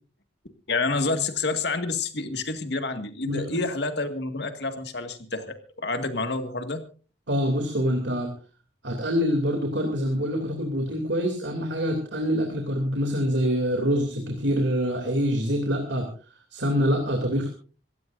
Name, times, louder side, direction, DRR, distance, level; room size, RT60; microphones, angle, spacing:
voice 1, 0.7-6.8, left 3 dB, 65° left, 7 dB, 2.0 m, -28 dB
voice 2, 3.2-3.6 7.3-8.3 8.8-16.1 16.5-17.5, equal, 80° right, 3 dB, 3.0 m, -25 dB
26.0 x 15.5 x 2.6 m, 0.37 s
head